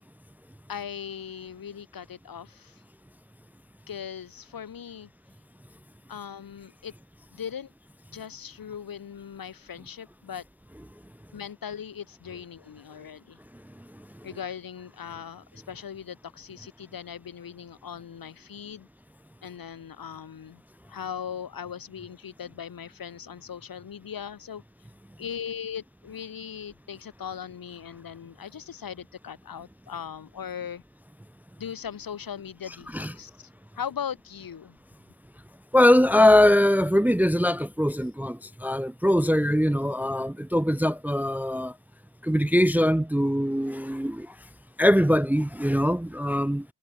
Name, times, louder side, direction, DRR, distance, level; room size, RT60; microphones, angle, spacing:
voice 1, 0.7-2.8 3.9-5.1 6.1-6.9 7.3-7.7 8.1-10.4 11.3-13.4 14.2-18.9 19.4-20.6 20.9-24.6 25.2-30.8 31.6-33.5 33.7-34.8, left 8 dB, 50° left, 2.6 m, -39 dB
voice 2, 35.7-41.7 42.2-44.3 44.8-46.6, left 1 dB, 5° right, 0.4 m, -22 dB
cardioid pair, 80°, 45 cm